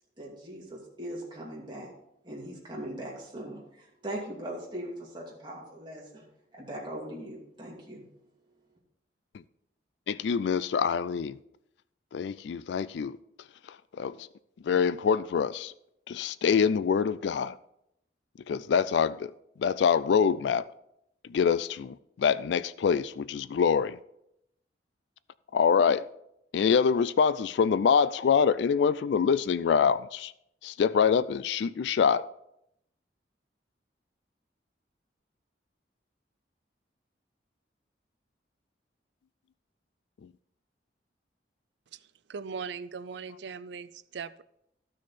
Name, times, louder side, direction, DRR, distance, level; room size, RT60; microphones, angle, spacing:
voice 1, 0.2-1.9 2.2-6.3 6.5-8.1, right 1 dB, 25° right, 2.5 m, -40 dB
voice 2, 10.1-11.4 12.1-13.2 14.0-14.3 14.6-15.7 16.1-17.6 18.5-19.3 19.6-20.7 21.2-24.0 25.5-26.1 26.5-30.3 30.6-32.2, left 6 dB, 70° left, 0.3 m, -25 dB
voice 3, 41.9-44.4, right 5 dB, 70° right, 0.4 m, -40 dB
14.0 x 6.3 x 4.2 m
head